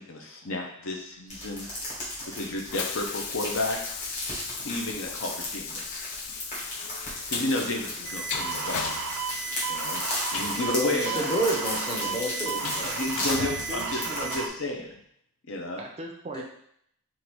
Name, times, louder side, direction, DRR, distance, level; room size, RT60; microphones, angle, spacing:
voice 1, 0.0-1.7 2.3-3.8 4.6-6.0 7.3-8.9 9.7-10.0 10.3-11.1 12.6-15.0 15.4-15.8, left 2 dB, 60° left, 1 dB, 0.7 m, -32 dB
sound 1, 1.3-14.4, left 1 dB, 35° left, 1.4 m, -35 dB
Train, 1.6-14.8, left 7 dB, 85° left, 0.4 m, -39 dB
sound 2, 8.0-14.5, right 5 dB, 80° right, 0.5 m, -34 dB
voice 2, 10.5-13.0 16.3-16.4, right 1 dB, 20° left, -2 dB, 0.8 m, -30 dB
voice 3, 13.3-14.4 15.8-16.4, right 2 dB, 30° right, 1 dB, 0.4 m, -38 dB
3.8 x 2.6 x 4.5 m, 0.69 s
head